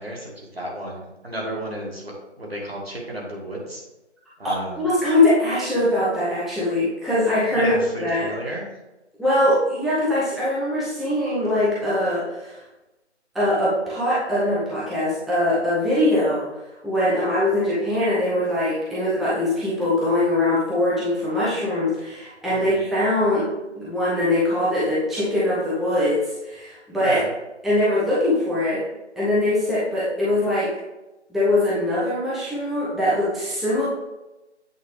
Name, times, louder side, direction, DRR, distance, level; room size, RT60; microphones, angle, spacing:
voice 1, 0.0-3.8 4.4-4.9 7.5-8.7 22.5-22.8 26.9-27.2, right 1 dB, 55° right, -2 dB, 1.9 m, -33 dB
voice 2, 4.8-8.3 9.2-12.6 13.3-16.5 16.8-27.2 27.6-28.8 29.2-30.7 31.3-33.8, left 1 dB, ahead, -10 dB, 0.6 m, -22 dB
8.1 x 3.9 x 3.1 m, 1.0 s
figure-of-eight pair, 175°, 36 cm